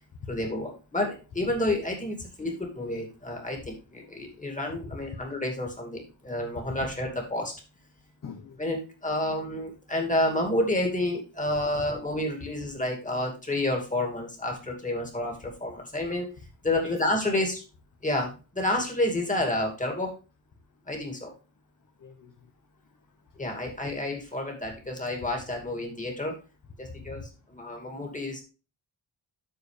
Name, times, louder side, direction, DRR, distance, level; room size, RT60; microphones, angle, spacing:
voice 1, 0.3-7.5 8.6-16.3 16.6-17.6 18.0-18.3 18.5-20.1 20.9-21.3 23.4-26.3 26.8-28.4, left 1 dB, 15° left, 1 dB, 2.4 m, -29 dB
voice 2, 8.2-8.6 16.8-16.9 17.3-17.5 22.0-22.3 27.2-27.3, left 6 dB, 40° left, 5 dB, 0.9 m, -42 dB
13.0 x 4.7 x 3.3 m, 0.32 s
wide cardioid pair, 150°, 47 cm